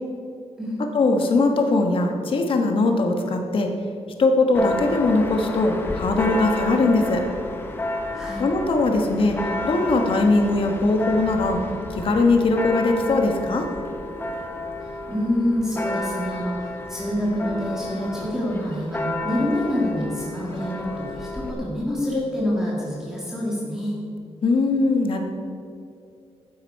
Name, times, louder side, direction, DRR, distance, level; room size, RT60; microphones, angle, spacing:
voice 1, 0.9-3.7 4.2-7.2 8.4-9.4 9.6-11.6 11.9-13.7 24.4-25.2, left 3 dB, 50° left, 4 dB, 1.4 m, -20 dB
Church bell, 4.5-21.5, left 2 dB, 20° left, 1.0 m, -31 dB
voice 2, 8.1-8.5 15.1-24.0, left 1 dB, 5° right, -5 dB, 1.9 m, -26 dB
12.5 x 9.7 x 4.7 m, 2.6 s
wide cardioid pair, 170°, 11 cm